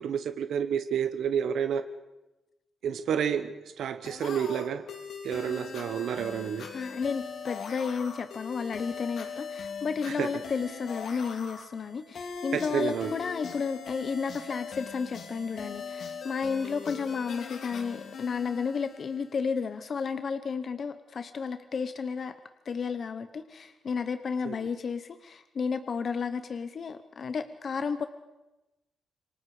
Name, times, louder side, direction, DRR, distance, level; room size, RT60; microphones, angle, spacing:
voice 1, 0.0-1.8 2.8-4.9 5.2-6.7 10.2-10.3 12.5-13.1 24.4-24.5, right 8 dB, 80° right, 9 dB, 1.1 m, -30 dB
sound 1, 4.0-19.5, left 5 dB, 60° left, 3.3 m, -41 dB
voice 2, 6.7-22.3 22.6-28.1, left 5 dB, 40° left, 10 dB, 0.9 m, -32 dB
27.5 x 24.5 x 4.9 m, 1.0 s
wide cardioid pair, 170°, 0 cm